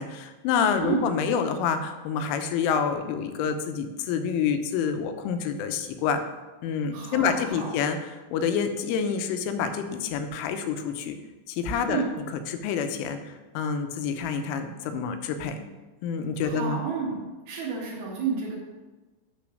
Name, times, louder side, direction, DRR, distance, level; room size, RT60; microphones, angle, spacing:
voice 1, 0.0-6.2 6.6-8.0 8.3-11.2 11.5-12.0 12.5-13.2 13.5-15.7 16.0-16.8, left 6 dB, 85° left, 7 dB, 3.2 m, -27 dB
voice 2, 6.9-7.7 11.9-12.0 16.4-17.2 17.5-18.5, right 5 dB, 60° right, -7 dB, 2.2 m, -30 dB
9.3 x 3.8 x 6.4 m, 1.2 s
omnidirectional pair, 5.6 m